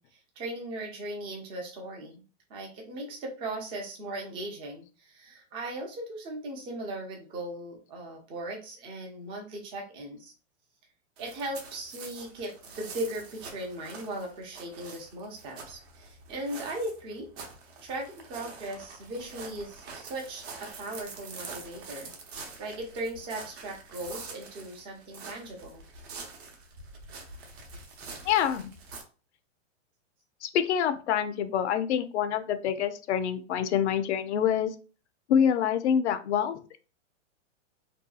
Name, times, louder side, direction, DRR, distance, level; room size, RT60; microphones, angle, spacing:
voice 1, 0.0-2.2 2.5-10.3 11.2-17.3 17.8-22.1 22.6-25.8, right 1 dB, 15° right, 1 dB, 0.4 m, -38 dB
sound 1, 11.2-29.0, right 4 dB, 55° right, 0.8 m, -45 dB
voice 2, 28.2-28.7 30.4-34.7 35.3-36.8, left 8 dB, 65° left, 9 dB, 0.5 m, -26 dB
2.7 x 2.2 x 2.3 m, 0.36 s
hypercardioid pair, 145°, 37 cm